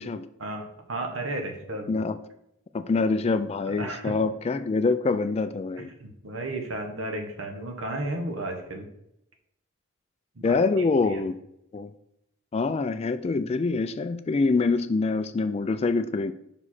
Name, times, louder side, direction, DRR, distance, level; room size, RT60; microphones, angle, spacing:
voice 1, 0.4-2.0 3.7-4.2 5.8-8.9 10.4-10.6 11.1-11.2, right 2 dB, 75° right, 4 dB, 1.1 m, -33 dB
voice 2, 2.7-5.9 10.4-11.4 11.7-11.9 12.5-16.3, left 3 dB, 30° left, 11 dB, 0.3 m, -25 dB
5.4 x 4.9 x 4.2 m, 0.80 s
head